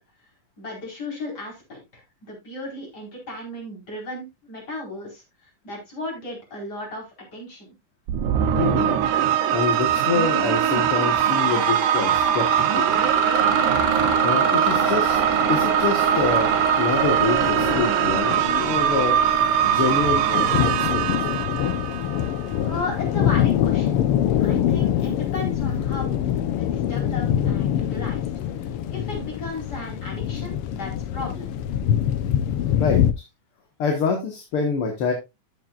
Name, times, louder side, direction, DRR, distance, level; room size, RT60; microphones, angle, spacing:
voice 1, 0.6-7.7 22.7-24.0 24.4-26.2 26.6-28.3 28.6-31.5, left 2 dB, 30° left, -1 dB, 5.0 m, -35 dB
sound 1, 8.1-22.5, right 9 dB, 80° right, 2.4 m, -22 dB
voice 2, 8.5-9.0 9.5-13.0 13.9-15.2 15.5-19.2 19.6-21.3 32.8-33.0 33.8-35.1, left 5 dB, 50° left, 3 dB, 2.0 m, -26 dB
Mechanisms, 9.6-10.0 10.3-20.9, right 3 dB, 30° right, 1.3 m, -28 dB
sound 2, 15.1-33.1, left 10 dB, 85° left, 1.2 m, -25 dB
13.5 x 7.5 x 2.4 m, 0.22 s
omnidirectional pair, 3.6 m